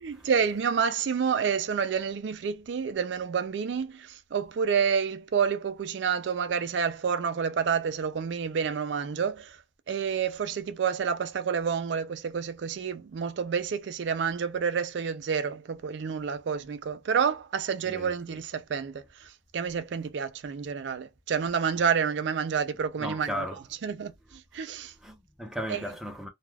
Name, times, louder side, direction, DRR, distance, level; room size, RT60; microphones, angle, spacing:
voice 1, 0.0-9.6 9.9-23.4 23.8-24.9 25.7-25.9, right 6 dB, 80° right, 0.4 m, -29 dB
voice 2, 23.0-23.6 25.0-26.3, equal, ahead, 0.7 m, -36 dB
2.3 x 2.2 x 3.2 m
head